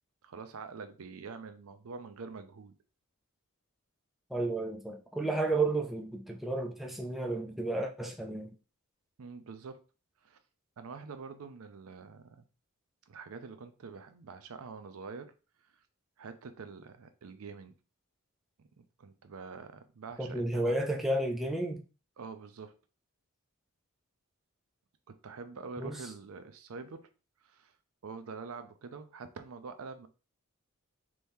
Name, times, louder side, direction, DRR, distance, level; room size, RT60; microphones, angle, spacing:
voice 1, 0.2-2.8 9.2-9.8 10.2-10.4 10.8-12.4 13.1-15.3 16.2-17.7 18.6-20.8 22.2-22.7 25.2-27.1 27.4-27.7 28.0-30.1, right 4 dB, 65° right, 0.5 m, -45 dB
voice 2, 4.3-8.5 20.2-21.8 25.8-26.1, right 2 dB, ahead, 0.3 m, -32 dB
3.5 x 3.0 x 2.7 m
head